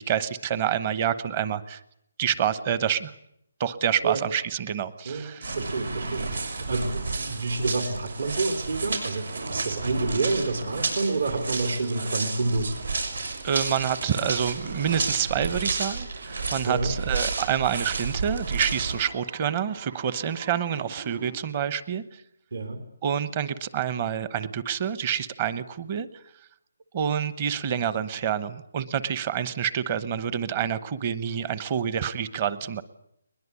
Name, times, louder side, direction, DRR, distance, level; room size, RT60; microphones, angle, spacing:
voice 1, 0.0-1.8 2.2-3.1 3.6-5.5 13.4-22.2 23.0-26.1 26.9-32.8, right 8 dB, 25° right, 15 dB, 1.0 m, -27 dB
voice 2, 5.1-12.8 16.7-16.9 22.5-22.8, right 3 dB, 65° right, 8 dB, 3.6 m, -28 dB
sound 1, 5.4-18.9, right 3 dB, 85° right, 6.4 m, -31 dB
sound 2, 5.5-21.4, right 5 dB, 45° right, 3.1 m, -47 dB
21.5 x 21.0 x 8.3 m, 0.74 s
hypercardioid pair, 175°, 0 cm